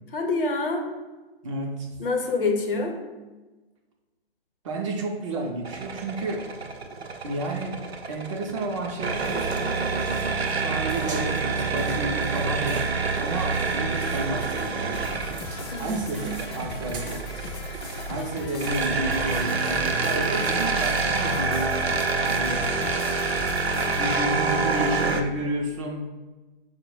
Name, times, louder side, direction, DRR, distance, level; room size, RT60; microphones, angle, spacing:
voice 1, 0.1-0.8 2.0-2.9 15.7-16.4, left 3 dB, 60° left, 2 dB, 0.8 m, -26 dB
voice 2, 1.4-1.9 4.6-6.5 7.2-9.6 10.4-15.3 15.8-17.4 18.1-21.9 22.2-23.0 24.0-26.1, right 1 dB, 30° right, 0 dB, 0.5 m, -31 dB
sound 1, 5.7-25.2, right 4 dB, 85° right, 0.6 m, -27 dB
sound 2, 9.2-21.4, right 4 dB, 60° right, 0.8 m, -44 dB
sound 3, 14.9-24.2, left 1 dB, 25° left, 0.4 m, -37 dB
4.3 x 2.1 x 4.5 m, 1.2 s
figure-of-eight pair, 130°, 31 cm